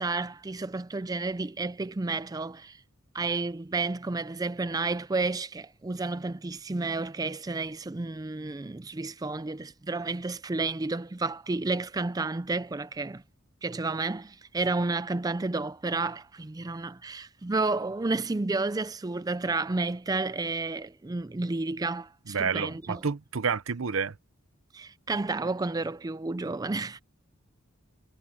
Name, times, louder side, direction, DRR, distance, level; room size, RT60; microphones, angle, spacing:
voice 1, 0.0-2.8 3.1-13.2 13.6-23.0 24.7-27.0, right 3 dB, 20° right, 0.4 m, -31 dB
voice 2, 22.3-24.1, right 5 dB, 75° right, 0.8 m, -29 dB
head